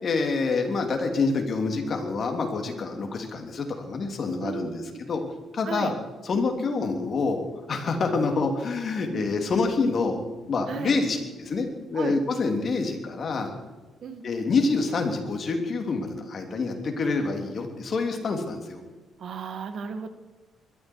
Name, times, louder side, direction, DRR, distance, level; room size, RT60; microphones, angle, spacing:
voice 1, 0.0-4.8 5.1-5.2 5.5-5.9 6.2-10.2 10.5-13.5 14.2-18.8, left 4 dB, 50° left, 3 dB, 3.3 m, -27 dB
voice 2, 4.4-5.0 5.6-5.9 9.1-9.3 10.7-11.0 11.9-12.2 14.0-14.3 19.2-20.1, right 5 dB, 60° right, 9 dB, 1.6 m, -34 dB
22.0 x 13.5 x 4.7 m, 1.2 s
cardioid pair, 90°, 0 cm